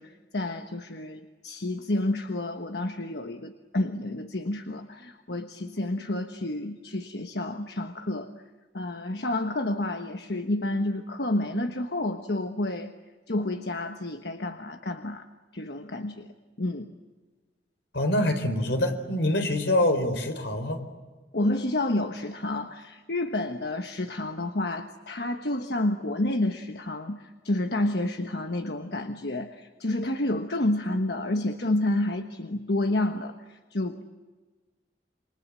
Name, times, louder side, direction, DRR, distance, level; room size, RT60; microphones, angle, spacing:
voice 1, 0.0-8.3 8.7-12.9 13.3-15.3 15.5-16.3 16.6-16.9 21.3-34.0, left 1 dB, 65° left, 6 dB, 1.3 m, -29 dB
voice 2, 17.9-20.8, left 1 dB, 80° left, 6 dB, 4.5 m, -25 dB
28.0 x 25.0 x 7.5 m, 1.3 s
head